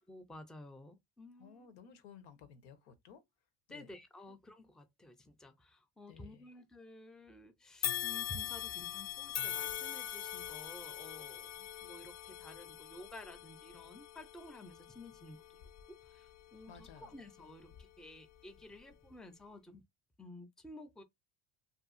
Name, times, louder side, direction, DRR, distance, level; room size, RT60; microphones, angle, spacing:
voice 1, 0.1-1.7 3.7-15.4 15.9-19.8 20.2-21.0, left 1 dB, ahead, 0.5 m, -53 dB
voice 2, 1.4-3.2 3.7-3.9 6.1-6.5 16.7-17.2, left 7 dB, 85° left, 0.9 m, -56 dB
sound 1, 7.8-17.1 17.6-17.8 18.8-18.9, left 11 dB, 55° left, 0.5 m, -42 dB
2.7 x 2.3 x 2.5 m
supercardioid pair, 95°, 32 cm